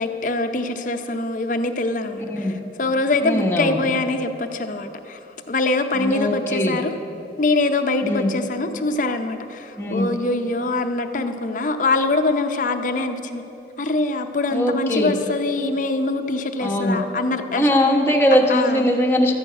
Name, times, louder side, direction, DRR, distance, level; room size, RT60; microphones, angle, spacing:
voice 1, 0.0-2.5 2.8-5.2 5.5-7.0 7.4-13.4 13.8-17.7 18.5-18.9, left 2 dB, 45° left, 7 dB, 0.6 m, -23 dB
voice 2, 2.3-2.6 3.2-3.8 5.9-6.8 8.0-8.3 9.8-10.1 14.5-15.2 16.6-17.0 17.5-19.4, equal, 15° left, 0 dB, 1.0 m, -20 dB
12.5 x 6.2 x 8.7 m, 3.0 s
head